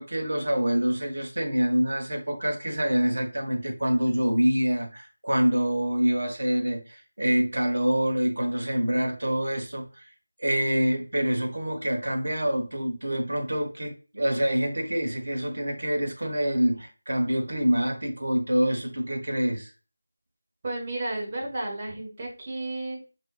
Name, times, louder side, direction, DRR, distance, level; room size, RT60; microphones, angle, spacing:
voice 1, 0.0-10.0 10.4-19.7, right 1 dB, 60° right, 1.2 m, -26 dB
voice 2, 20.6-23.0, right 2 dB, 30° right, 1.3 m, -32 dB
5.0 x 3.7 x 2.3 m
figure-of-eight pair, 165°, 0 cm